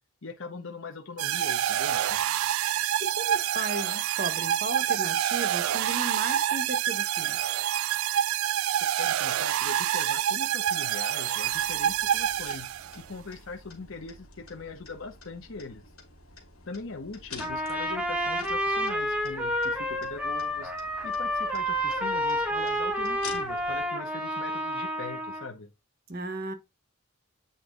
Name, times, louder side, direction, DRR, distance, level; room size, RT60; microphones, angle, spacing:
voice 1, 0.2-2.2 9.0-12.7 12.9-15.9 16.7-20.7 21.0-25.7, left 3 dB, 65° left, 0.9 m, -41 dB
sound 1, 1.2-13.0, right 11 dB, 75° right, 0.3 m, -27 dB
voice 2, 3.0-7.4 26.1-26.5, right 2 dB, 45° right, 1.2 m, -35 dB
sound 2, 11.5-23.8, left 4 dB, 85° left, 2.4 m, -49 dB
Trumpet, 17.4-25.5, equal, 5° right, 1.3 m, -29 dB
8.0 x 3.9 x 3.7 m
head